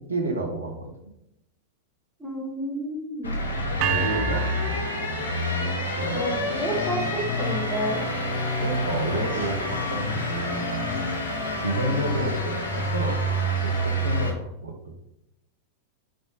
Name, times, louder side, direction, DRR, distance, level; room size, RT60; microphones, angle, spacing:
voice 1, 0.1-0.9 3.8-4.8 6.0-6.2 6.5-6.7 8.6-11.1 11.6-14.9, right 2 dB, 75° right, 2 dB, 0.9 m, -30 dB
voice 2, 2.2-3.4 6.1-8.1, right 1 dB, 5° right, -4 dB, 1.4 m, -30 dB
sound 1, 3.2-14.3, left 1 dB, 70° left, 0.8 m, -28 dB
sound 2, 3.8-5.9, right 12 dB, 45° right, 0.3 m, -31 dB
3.7 x 3.6 x 3.8 m, 0.84 s
figure-of-eight pair, 90°, 0 cm